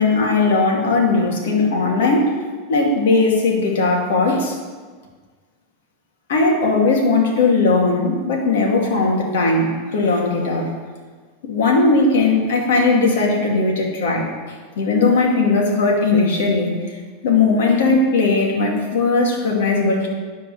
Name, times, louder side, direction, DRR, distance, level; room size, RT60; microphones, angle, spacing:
voice 1, 0.0-2.4 2.7-4.6 6.3-10.7 11.4-16.9 17.2-20.1, left 3 dB, 85° left, 0 dB, 2.3 m, -18 dB
11.0 x 4.6 x 6.9 m, 1.5 s
supercardioid pair, 140°, 0 cm